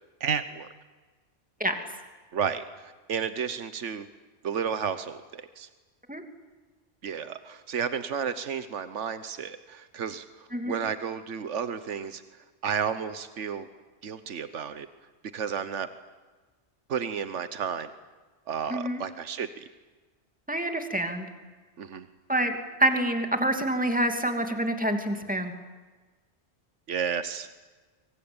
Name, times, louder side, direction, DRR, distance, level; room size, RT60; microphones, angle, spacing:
voice 1, 0.2-0.7 2.3-4.1 4.4-5.7 7.0-10.3 10.6-12.2 12.6-13.7 14.0-14.9 15.3-15.9 16.9-17.9 18.5-19.7 21.8-22.1 26.9-27.5, right 7 dB, 90° right, 11 dB, 1.4 m, -32 dB
voice 2, 18.7-19.0 20.5-21.3 22.3-25.5, right 1 dB, 5° right, 5 dB, 2.7 m, -27 dB
25.5 x 24.5 x 8.9 m, 1.3 s
omnidirectional pair, 1.2 m